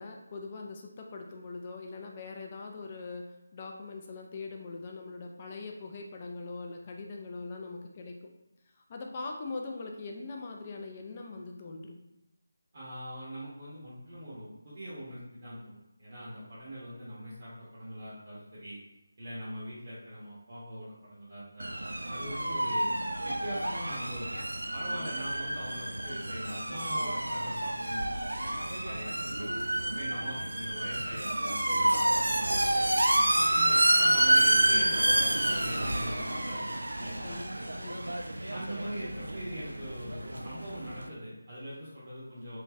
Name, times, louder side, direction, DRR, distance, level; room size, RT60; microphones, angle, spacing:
voice 1, 0.0-8.2 8.9-12.0 37.2-38.2, left 3 dB, 25° left, 1 dB, 0.3 m, -42 dB
voice 2, 12.7-18.8 19.2-21.7 22.0-22.9 23.2-24.2 24.7-28.5 28.8-29.5 29.9-32.8 33.3-36.6 37.0-37.3 38.5-42.6, equal, 40° right, -10 dB, 1.0 m, -42 dB
sound 1, 21.6-41.1, right 1 dB, 70° right, 0.3 m, -29 dB
3.2 x 3.0 x 2.4 m, 0.93 s
figure-of-eight pair, 155°, 0 cm